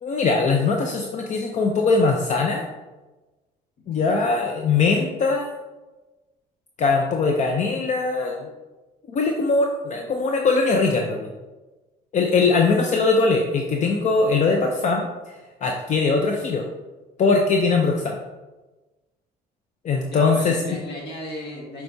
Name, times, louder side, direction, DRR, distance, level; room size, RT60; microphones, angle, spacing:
voice 1, 0.0-2.6 3.9-5.5 6.8-8.5 9.1-11.3 12.1-16.7 17.2-18.2 19.8-20.8, left 4 dB, 45° left, 2 dB, 0.6 m, -21 dB
voice 2, 3.8-4.4 20.1-21.8, left 1 dB, 80° left, -3 dB, 2.0 m, -36 dB
7.6 x 4.7 x 2.7 m, 1.2 s
cardioid pair, 110°, 17 cm